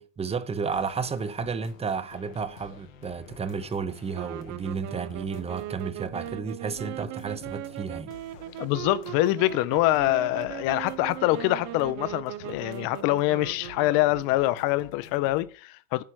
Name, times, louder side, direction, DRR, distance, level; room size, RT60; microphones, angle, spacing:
voice 1, 0.0-8.1, right 5 dB, 15° right, 0.7 m, -32 dB
sound 1, 0.7-15.5, left 5 dB, 90° left, 1.6 m, -49 dB
sound 2, 4.1-14.5, right 17 dB, 45° right, 0.5 m, -39 dB
voice 2, 8.6-16.0, left 17 dB, 60° left, 0.8 m, -25 dB
8.6 x 4.3 x 6.3 m
supercardioid pair, 110°, 38 cm